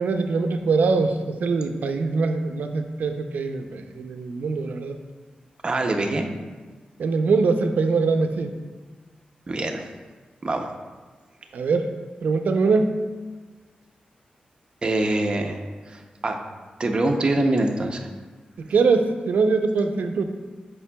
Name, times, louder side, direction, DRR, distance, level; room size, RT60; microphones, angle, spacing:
voice 1, 0.0-5.0 7.0-8.5 11.5-11.9 12.2-13.0 18.6-20.2, right 4 dB, 90° right, 6 dB, 0.4 m, -23 dB
voice 2, 5.6-6.3 9.5-9.9 10.4-10.7 14.8-15.6 15.9-16.4 16.8-18.1, right 2 dB, 35° right, 3 dB, 0.6 m, -24 dB
8.3 x 5.2 x 2.2 m, 1.4 s
wide cardioid pair, 130°, 3 cm